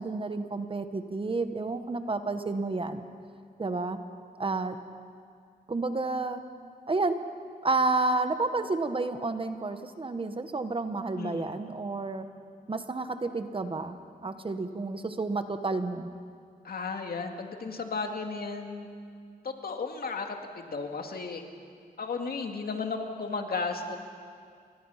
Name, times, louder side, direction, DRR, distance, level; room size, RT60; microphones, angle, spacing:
voice 1, 0.0-3.0 3.6-4.0 4.4-4.8 5.7-6.4 6.9-7.2 7.6-12.3 12.7-14.0 14.2-16.1, right 3 dB, 30° right, 8 dB, 1.3 m, -30 dB
voice 2, 11.2-11.6 16.6-18.9 19.4-21.4 22.0-24.0, left 4 dB, 65° left, 4 dB, 2.2 m, -34 dB
29.0 x 23.0 x 5.8 m, 2.2 s
wide cardioid pair, 120°, 17 cm